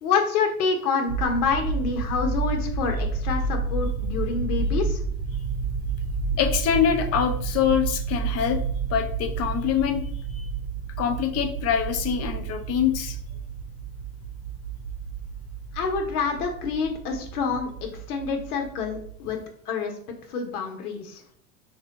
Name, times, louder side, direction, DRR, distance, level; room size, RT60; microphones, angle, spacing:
voice 1, 0.0-5.0 15.7-19.4 19.7-19.9 20.3-21.2, left 5 dB, 80° left, 3 dB, 0.9 m, -27 dB
sound 1, 1.1-19.1, right 4 dB, 60° right, 0.7 m, -30 dB
voice 2, 6.3-8.6 8.9-10.0 10.3-10.5 11.0-13.2, left 8 dB, 35° left, 6 dB, 0.6 m, -24 dB
3.3 x 2.2 x 3.9 m, 0.62 s
hypercardioid pair, 105°, 45 cm